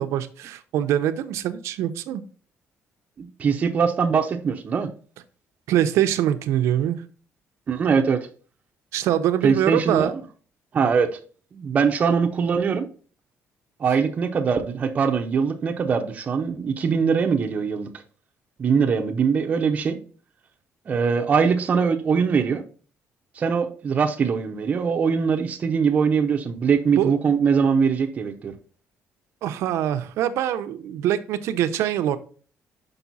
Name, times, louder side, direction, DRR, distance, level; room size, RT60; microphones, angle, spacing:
voice 1, 0.0-2.2 5.7-7.0 8.9-10.1 27.0-27.2 29.4-32.2, right 11 dB, 85° right, 0.6 m, -23 dB
voice 2, 3.2-4.9 7.7-8.3 9.4-10.1 10.7-11.1 11.5-12.9 13.8-17.9 18.6-20.0 20.9-22.6 23.4-28.5, right 6 dB, 30° right, 0.6 m, -22 dB
5.9 x 5.3 x 4.1 m
cardioid pair, 175°, 5 cm